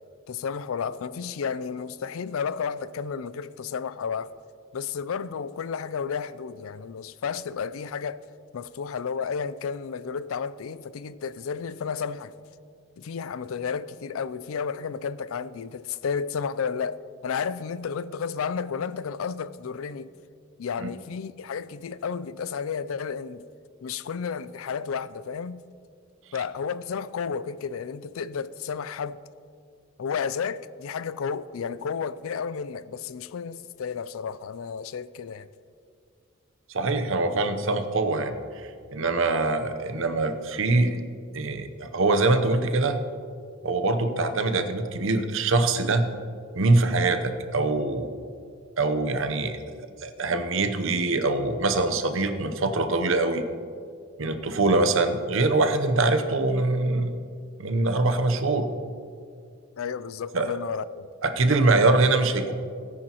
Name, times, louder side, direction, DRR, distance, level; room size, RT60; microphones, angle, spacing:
voice 1, 0.3-4.3 4.7-8.3 8.5-12.3 13.0-20.1 20.6-23.4 23.8-25.6 26.3-29.2 30.0-35.5 59.8-61.1, left 6 dB, 75° left, 0.4 m, -32 dB
voice 2, 36.7-38.4 38.9-41.0 41.3-43.0 43.6-46.1 46.5-48.1 48.8-49.6 50.0-53.4 54.2-57.1 57.6-58.7 60.3-60.5 61.2-62.5, right 2 dB, 65° right, 0.8 m, -23 dB
17.5 x 9.9 x 3.0 m
head